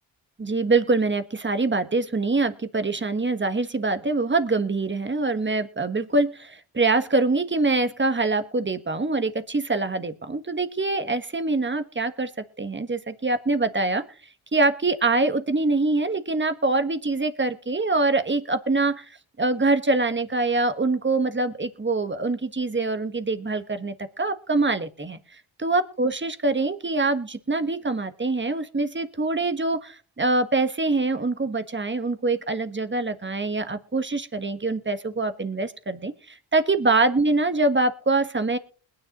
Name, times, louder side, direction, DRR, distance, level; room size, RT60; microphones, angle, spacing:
voice 1, 0.4-12.3 12.6-14.1 14.5-19.1 19.4-25.2 25.6-38.6, right 3 dB, 25° right, 10 dB, 1.4 m, -24 dB
21.0 x 9.9 x 3.0 m, 0.39 s
cardioid pair, 55°, 48 cm